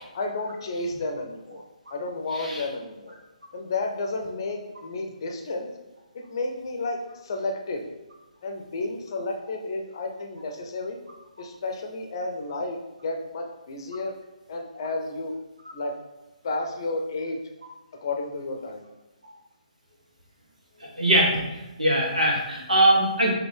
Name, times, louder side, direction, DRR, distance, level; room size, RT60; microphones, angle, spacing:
voice 1, 0.1-1.6 1.9-3.1 3.5-5.7 6.1-7.8 8.4-11.0 11.4-12.8 13.0-14.1 14.5-15.3 15.7-15.9 16.4-17.4 18.0-18.8, left 2 dB, 35° left, 2 dB, 0.6 m, -31 dB
voice 2, 20.8-21.4 21.8-23.3, right 1 dB, 80° right, -3 dB, 1.5 m, -21 dB
5.1 x 2.9 x 3.4 m, 1.1 s
figure-of-eight pair, 140°, 4 cm